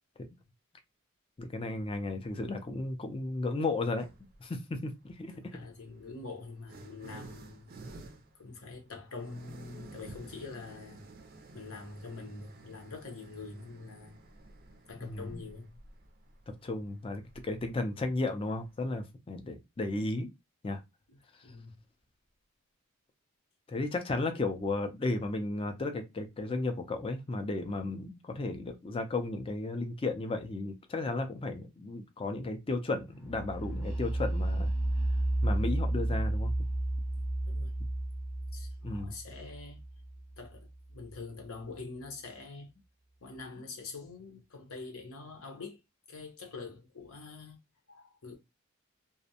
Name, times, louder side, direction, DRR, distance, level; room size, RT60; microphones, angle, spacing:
voice 1, 1.4-4.1 4.4-5.6 15.0-15.4 16.6-20.3 20.6-20.8 23.7-34.7 35.4-36.7 38.8-39.2, left 2 dB, 25° left, 0.4 m, -34 dB
sound 1, 4.0-4.4 5.4-18.9, right 2 dB, 40° right, 0.4 m, -52 dB
voice 2, 5.3-7.7 8.4-11.0 11.5-14.2 14.9-15.8 21.1-21.2 21.4-21.8 37.1-37.7 38.5-39.8 40.4-42.7 43.2-45.8 46.1-47.6 47.9-48.4, left 3 dB, 75° left, 0.8 m, -45 dB
sound 2, 33.2-40.9, right 1 dB, 10° right, 0.8 m, -32 dB
2.5 x 2.0 x 2.7 m
head